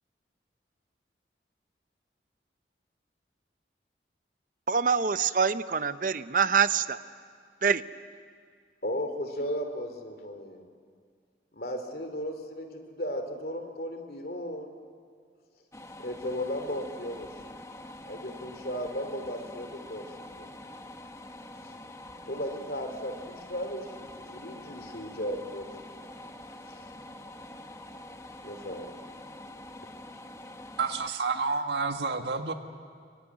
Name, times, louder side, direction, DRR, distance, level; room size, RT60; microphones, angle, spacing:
voice 1, 4.7-7.0 7.6-7.8, right 6 dB, 50° right, 13 dB, 0.7 m, -25 dB
voice 2, 8.8-10.7 11.5-14.7 16.0-17.6 18.0-20.5 22.3-26.0 26.7-26.8 28.4-28.9, equal, 55° left, 6 dB, 2.7 m, -36 dB
sound 1, 15.7-31.1, left 1 dB, 15° left, 1.2 m, -45 dB
voice 3, 30.8-32.5, right 4 dB, 75° right, 6 dB, 1.8 m, -29 dB
24.5 x 24.0 x 9.7 m, 2.1 s
head